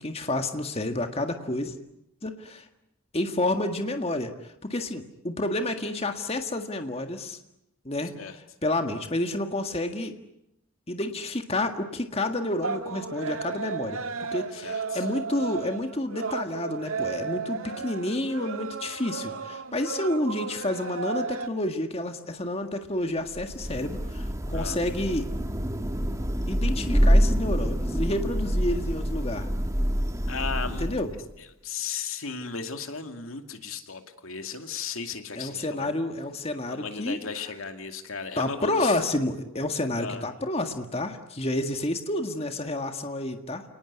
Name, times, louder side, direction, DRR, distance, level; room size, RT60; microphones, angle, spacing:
voice 1, 0.0-1.8 2.2-2.7 3.1-7.4 7.9-8.2 8.6-10.2 10.9-14.0 14.3-25.3 26.5-29.5 30.8-31.1 35.4-37.2 38.4-43.6, left 1 dB, 30° left, 6 dB, 1.8 m, -29 dB
sound 1, 12.6-21.5, right 5 dB, 90° right, 1.7 m, -34 dB
voice 2, 14.5-15.1 24.5-24.8 30.3-30.9 31.1-35.9 36.7-39.0 40.0-40.3, left 5 dB, 90° left, 7 dB, 2.5 m, -36 dB
Thunder / Rain, 23.3-31.3, equal, 15° right, 1.6 m, -26 dB
29.5 x 19.5 x 9.7 m, 0.85 s
head